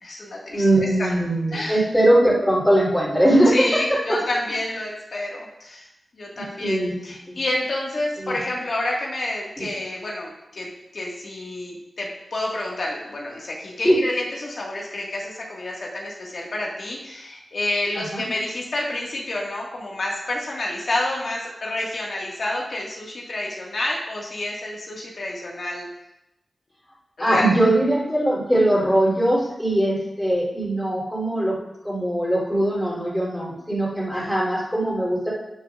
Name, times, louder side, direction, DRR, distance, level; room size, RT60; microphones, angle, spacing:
voice 1, 0.0-1.1 1.5-1.8 3.5-5.9 6.1-25.9 27.2-27.5 34.1-34.4, left 1 dB, 60° left, -3 dB, 1.8 m, -29 dB
voice 2, 0.5-4.2 6.4-6.9 7.3-7.4 8.2-8.4 9.6-9.7 13.8-14.0 17.9-18.2 27.2-31.5 31.8-35.3, right 1 dB, 5° left, -7 dB, 3.3 m, -21 dB
12.0 x 8.6 x 2.5 m, 0.88 s
wide cardioid pair, 100°, 0 cm